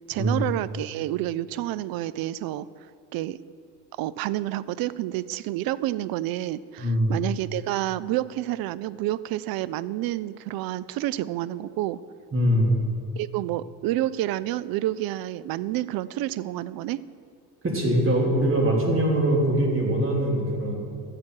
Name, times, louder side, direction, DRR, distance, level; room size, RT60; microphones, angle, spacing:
voice 1, 0.1-2.7 3.1-3.4 4.0-12.0 13.2-17.0, right 14 dB, 60° right, 18 dB, 0.5 m, -29 dB
voice 2, 6.8-7.1 12.3-12.7 17.6-20.7, right 1 dB, 30° right, -1 dB, 2.8 m, -22 dB
13.0 x 8.7 x 4.6 m, 2.2 s
supercardioid pair, 90°, 42 cm